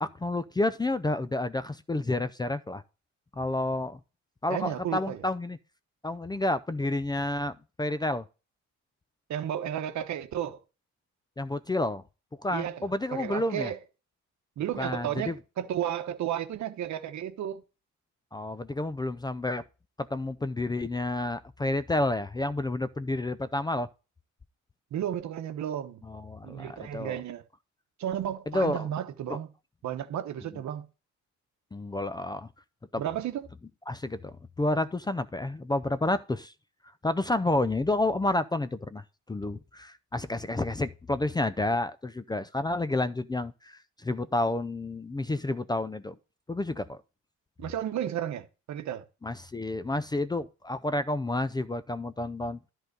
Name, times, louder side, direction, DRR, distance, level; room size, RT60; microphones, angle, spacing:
voice 1, 0.0-2.8 3.4-4.0 4.4-5.6 6.0-8.3 11.4-12.0 12.4-13.7 14.8-15.4 18.3-19.6 20.0-23.9 26.0-27.2 28.5-28.9 29.3-29.4 31.7-32.5 32.9-33.0 33.9-36.5 37.0-46.1 46.5-47.0 49.2-52.6, left 2 dB, 15° left, 0.4 m, -30 dB
voice 2, 4.5-5.2 9.3-10.6 12.5-12.8 13.1-13.8 14.6-17.6 24.9-26.0 26.4-27.4 28.0-29.5 29.8-30.9 33.0-33.5 47.6-49.0, right 10 dB, 70° right, 1.0 m, -33 dB
11.0 x 3.8 x 6.6 m
cardioid pair, 90°, 30 cm